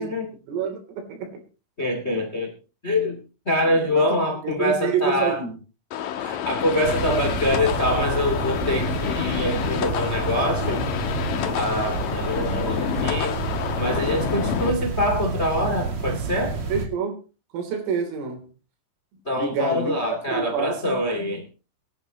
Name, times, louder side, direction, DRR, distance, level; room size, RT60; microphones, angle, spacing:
voice 1, 0.5-1.4 3.7-4.2 4.4-5.6 16.7-17.2 17.5-18.5 19.4-20.0 20.3-21.0, right 5 dB, 85° right, 5.9 m, -27 dB
voice 2, 1.8-2.5 2.8-3.2 3.4-5.4 6.2-10.8 11.5-13.4 13.7-16.6 19.2-21.4, left 1 dB, 55° left, 0.7 m, -25 dB
sound 1, 5.9-14.7, left 9 dB, 90° left, 1.9 m, -28 dB
sound 2, 6.8-16.8, right 3 dB, 45° right, 2.8 m, -29 dB
23.0 x 11.0 x 3.0 m
omnidirectional pair, 5.8 m